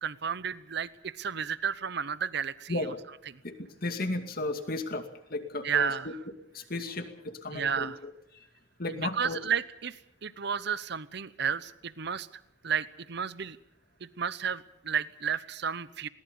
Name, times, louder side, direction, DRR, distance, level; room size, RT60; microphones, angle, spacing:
voice 1, 0.0-2.8 5.6-6.1 7.5-8.0 9.0-12.3 12.6-13.6 14.0-16.1, right 7 dB, 60° right, 16 dB, 0.9 m, -32 dB
voice 2, 3.4-5.0 5.3-6.1 6.5-8.5 8.8-9.4, left 2 dB, 50° left, 7 dB, 2.4 m, -34 dB
21.0 x 19.0 x 7.0 m, 0.79 s
head